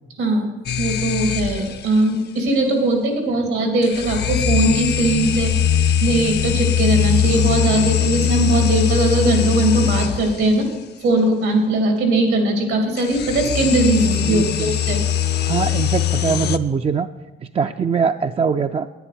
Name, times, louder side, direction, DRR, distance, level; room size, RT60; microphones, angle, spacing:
voice 1, 0.2-0.5 0.8-5.5 6.0-10.7 11.0-15.0, right 2 dB, 90° right, 3 dB, 2.7 m, -19 dB
sound 1, 0.7-1.9 3.8-10.5 13.0-16.6, left 9 dB, 55° left, 0.6 m, -21 dB
voice 2, 14.3-14.7 15.5-17.1 17.4-18.9, right 6 dB, 30° right, 7 dB, 0.4 m, -22 dB
10.0 x 10.0 x 5.0 m, 1.2 s
cardioid pair, 90°, 20 cm